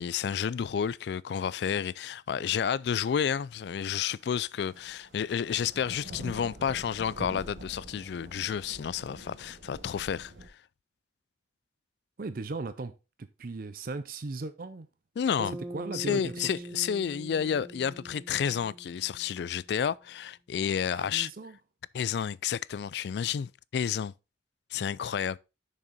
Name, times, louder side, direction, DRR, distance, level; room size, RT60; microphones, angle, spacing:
voice 1, 0.0-10.3 15.2-15.5 15.9-21.3 21.9-24.1 24.7-25.4, left 8 dB, 60° left, 0.3 m, -30 dB
sound 1, 4.1-4.3 4.5-10.5, right 1 dB, 80° right, 2.1 m, -46 dB
voice 2, 12.2-14.9 15.4-16.3 21.0-21.6, right 3 dB, 50° right, 0.5 m, -38 dB
Bass guitar, 15.4-19.8, right 1 dB, 10° right, 1.3 m, -43 dB
6.6 x 6.1 x 4.1 m
head